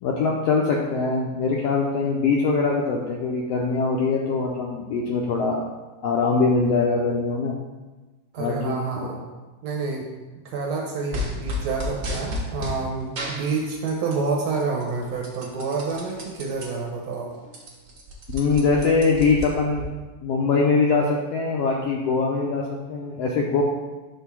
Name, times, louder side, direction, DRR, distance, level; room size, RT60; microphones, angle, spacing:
voice 1, 0.0-5.7 6.0-7.5 8.4-9.1 18.3-19.8 20.2-22.6 22.9-23.6, left 4 dB, 80° left, -2 dB, 1.4 m, -22 dB
voice 2, 8.3-9.2 9.6-10.1 10.5-17.4, right 4 dB, 70° right, 0 dB, 1.7 m, -28 dB
sound 1, 11.1-12.8 13.2-14.3 14.6-16.7 17.1-17.2 17.4-19.8, left 1 dB, 55° right, 1.1 m, -32 dB
5.7 x 3.5 x 5.9 m, 1.2 s
omnidirectional pair, 3.5 m